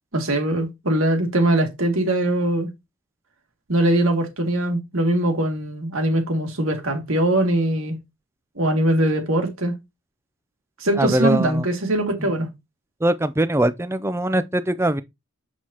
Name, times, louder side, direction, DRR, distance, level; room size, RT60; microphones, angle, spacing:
voice 1, 0.1-2.7 3.7-8.0 8.6-9.7 10.8-12.5, right 1 dB, 70° right, 2.3 m, -21 dB
voice 2, 11.0-11.6 13.0-15.0, right 1 dB, 10° right, 0.4 m, -21 dB
7.6 x 6.2 x 2.9 m
head